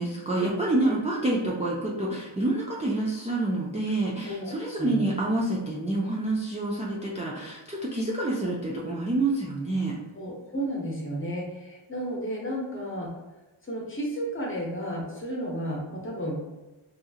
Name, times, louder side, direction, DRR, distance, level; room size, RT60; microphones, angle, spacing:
voice 1, 0.0-10.0, right 2 dB, 15° right, -5 dB, 0.3 m, -27 dB
voice 2, 4.2-5.1 10.1-13.1 13.6-16.4, right 1 dB, 25° left, -2 dB, 0.7 m, -33 dB
2.8 x 2.5 x 2.4 m, 1.1 s
wide cardioid pair, 100°, 49 cm